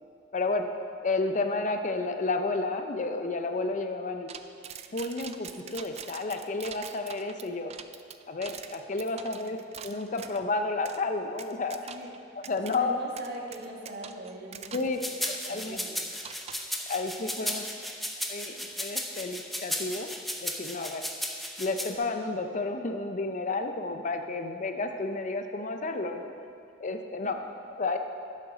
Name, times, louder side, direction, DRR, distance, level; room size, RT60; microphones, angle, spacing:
voice 1, 0.3-0.7 1.0-4.3 4.9-7.7 8.3-9.6 9.8-11.9 12.5-12.9 14.7-15.0 15.5-15.8 16.9-17.6 18.3-20.1 20.4-21.0 21.6-26.3 26.8-27.3 27.8-28.0, left 3 dB, 40° left, 6 dB, 0.5 m, -31 dB
sound 1, 4.3-10.4 10.9-11.0 11.4-12.2 12.4-12.8 13.2-15.0 15.2-15.4 16.2-16.8, right 8 dB, 35° right, 0.4 m, -44 dB
voice 2, 11.9-12.4 12.6-15.1 15.4-16.3 16.8-16.9 17.4-17.5, right 1 dB, 55° right, -1 dB, 1.5 m, -42 dB
sound 2, 15.0-21.9, equal, ahead, 0.7 m, -34 dB
11.5 x 7.6 x 5.0 m, 2.6 s
head